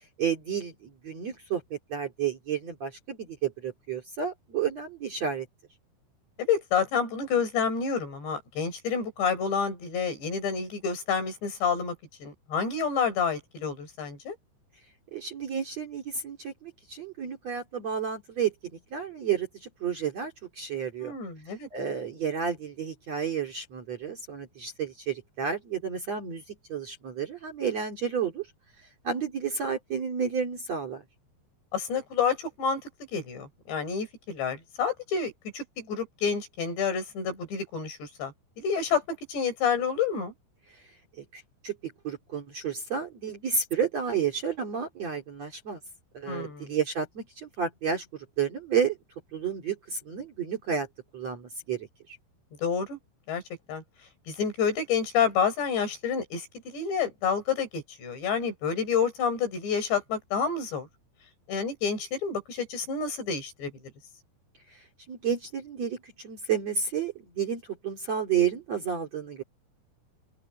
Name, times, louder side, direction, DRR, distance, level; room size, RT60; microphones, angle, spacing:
voice 1, 0.2-5.5 15.1-18.5 18.9-21.1 21.7-26.4 26.7-28.5 29.0-31.0 41.2-45.8 46.1-49.0 49.3-50.9 51.1-51.9 65.1-69.4, right 7 dB, 40° right, 3.0 m, -31 dB
voice 2, 6.4-11.9 12.2-14.4 21.0-21.7 31.7-32.8 33.1-40.3 46.3-46.7 52.6-53.0 53.3-53.4 53.7-53.8 54.3-60.9 61.5-63.7, left 6 dB, 65° left, 7.9 m, -29 dB
open air
omnidirectional pair, 5.5 m